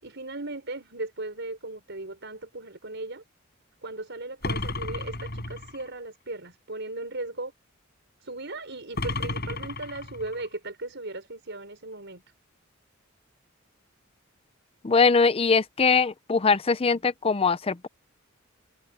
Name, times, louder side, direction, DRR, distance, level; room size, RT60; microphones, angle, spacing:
voice 1, 0.0-3.2 3.8-7.5 8.2-12.2, right 2 dB, 60° right, 5.7 m, -37 dB
sound 1, 4.4-5.9 9.0-10.5, left 2 dB, 50° left, 7.0 m, -33 dB
voice 2, 14.8-17.9, left 4 dB, 30° left, 0.5 m, -22 dB
head